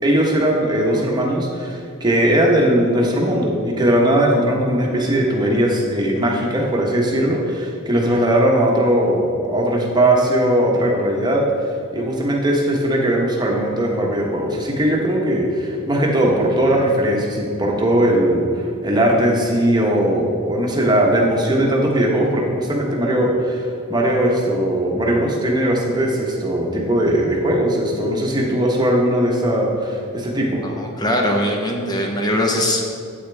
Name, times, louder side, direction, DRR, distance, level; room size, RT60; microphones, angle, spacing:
voice 1, 0.0-11.4 11.9-30.6, right 1 dB, 20° right, -1 dB, 1.2 m, -19 dB
voice 2, 30.5-32.8, left 1 dB, 20° left, 1 dB, 0.9 m, -21 dB
8.7 x 8.1 x 3.4 m, 2.4 s
head